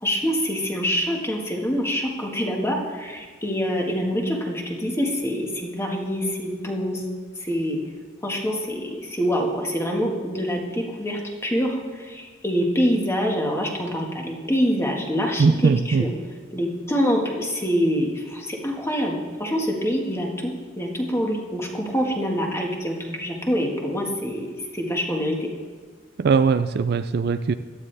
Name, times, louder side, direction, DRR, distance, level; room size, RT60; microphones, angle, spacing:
voice 1, 0.0-7.0 7.4-7.9 8.2-16.1 16.5-24.5 24.7-25.5, equal, 15° left, 0 dB, 1.7 m, -25 dB
voice 2, 15.4-16.1 26.2-27.5, right 5 dB, 50° right, 11 dB, 0.4 m, -20 dB
17.0 x 12.0 x 3.4 m, 1.5 s
head